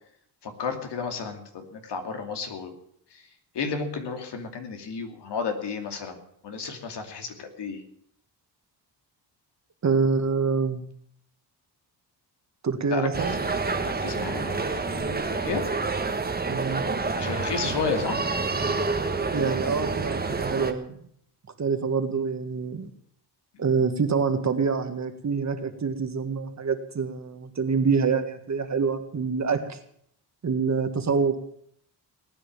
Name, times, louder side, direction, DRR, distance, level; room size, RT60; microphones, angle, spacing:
voice 1, 0.4-2.7 3.1-3.2 3.5-7.8 12.9-13.1 13.9-15.6 17.1-18.2, left 5 dB, 70° left, 5 dB, 2.7 m, -32 dB
voice 2, 9.8-10.9 12.6-13.4 16.5-16.8 19.3-21.0 21.6-22.9 23.6-29.8 30.4-31.4, right 5 dB, 40° right, 7 dB, 1.8 m, -26 dB
sound 1, 13.1-20.7, right 4 dB, 20° right, 1.5 m, -28 dB
18.5 x 9.7 x 7.4 m, 0.68 s
cardioid pair, 110°, 42 cm